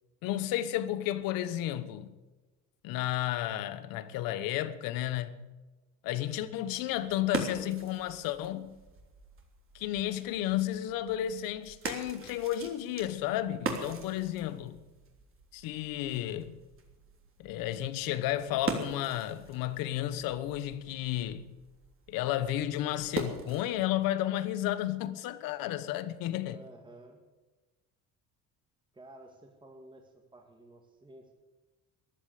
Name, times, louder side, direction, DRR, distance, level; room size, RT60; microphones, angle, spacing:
voice 1, 0.2-2.1 2.8-5.4 6.0-8.8 9.7-14.8 15.5-16.6 17.4-21.5 22.1-26.6, left 13 dB, 85° left, 1.2 m, -32 dB
sound 1, 6.7-23.9, right 4 dB, 40° right, 3.3 m, -42 dB
voice 2, 26.4-27.2 28.9-31.3, right 1 dB, 15° right, 2.1 m, -53 dB
14.5 x 11.0 x 8.4 m
cardioid pair, 110°, 33 cm